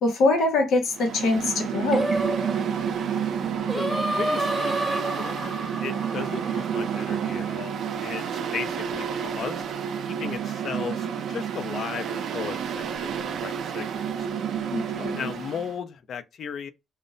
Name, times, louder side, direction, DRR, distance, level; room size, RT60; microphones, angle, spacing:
voice 1, 0.0-2.1 14.7-15.3, left 3 dB, 80° left, 0.8 m, -24 dB
Mechanical fan, 0.9-15.7, right 8 dB, 70° right, 0.4 m, -30 dB
Singing, 1.9-7.2, right 1 dB, 15° right, 0.7 m, -30 dB
voice 2, 3.7-5.6 5.8-7.7 8.0-9.6 10.1-14.3 15.2-16.7, left 7 dB, 60° left, 0.5 m, -36 dB
2.1 x 2.0 x 3.7 m
cardioid pair, 90°, 0 cm